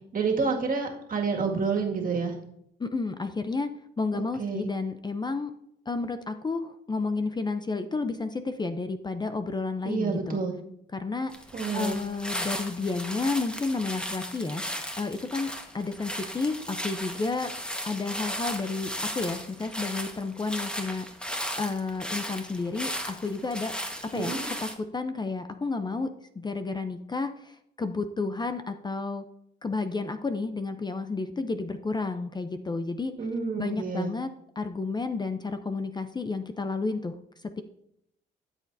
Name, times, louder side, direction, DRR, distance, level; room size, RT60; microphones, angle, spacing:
voice 1, 0.1-2.3 4.1-4.7 9.9-10.5 11.5-12.0 24.1-24.4 33.2-34.1, right 5 dB, 45° right, 1 dB, 2.0 m, -29 dB
voice 2, 2.8-3.7 4.0-5.5 5.9-10.4 10.9-11.3 11.7-14.6 15.0-17.5 17.8-21.1 21.5-23.7 24.1-26.1 26.4-29.2 29.6-33.1 33.6-34.3 34.6-37.6, left 3 dB, 20° left, 9 dB, 0.6 m, -31 dB
sound 1, 11.3-24.7, equal, 5° left, 1.4 m, -36 dB
13.0 x 7.4 x 2.7 m, 0.76 s
cardioid pair, 90°, 20 cm